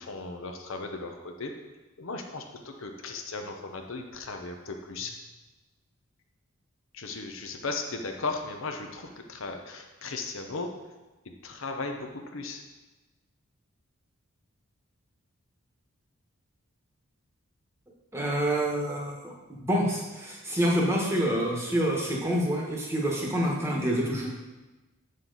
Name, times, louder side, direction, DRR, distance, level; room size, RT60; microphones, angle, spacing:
voice 1, 0.0-1.5 2.0-5.1 6.9-10.7 11.4-12.6, left 3 dB, 65° left, 4 dB, 0.7 m, -36 dB
voice 2, 18.1-24.3, equal, 10° right, -2 dB, 1.2 m, -27 dB
7.4 x 6.5 x 4.0 m, 1.1 s
head